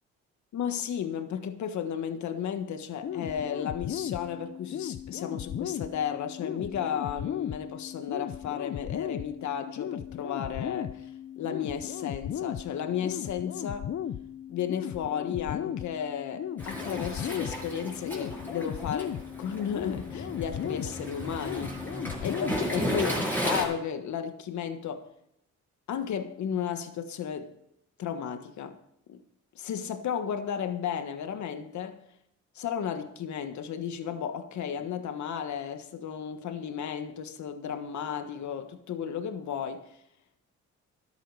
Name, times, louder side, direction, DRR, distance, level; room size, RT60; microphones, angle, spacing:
voice 1, 0.5-11.1 11.4-13.9 14.5-21.8 22.2-25.1 25.9-27.5 28.0-28.8 29.1-29.2 29.5-32.0 32.5-40.0, left 8 dB, 70° left, 1.5 m, -34 dB
sound 1, 3.0-23.0, left 10 dB, 50° left, 0.6 m, -36 dB
Waves surf, 16.6-23.6, equal, 5° left, 6.6 m, -34 dB
14.0 x 11.0 x 4.8 m
cardioid pair, 90°, 30 cm